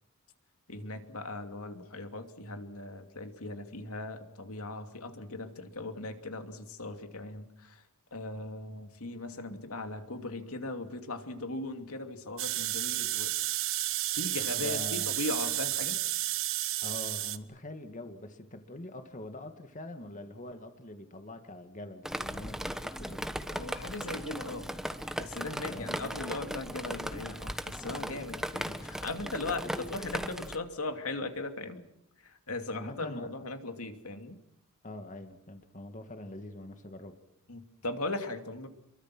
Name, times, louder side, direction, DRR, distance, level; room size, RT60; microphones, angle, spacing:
voice 1, 0.7-7.8 8.1-13.3 14.1-16.0 23.5-24.7 25.2-31.8 32.2-34.4 37.5-38.7, left 2 dB, 75° left, 6 dB, 2.8 m, -38 dB
sound 1, 12.4-17.4, right 14 dB, 65° right, 1.2 m, -32 dB
voice 2, 14.5-15.1 16.8-23.3 25.6-26.0 32.7-33.3 34.8-37.2, left 1 dB, 35° left, 7 dB, 2.1 m, -44 dB
Drip, 22.1-30.6, equal, ahead, 1.2 m, -37 dB
28.0 x 23.0 x 6.2 m, 0.79 s
head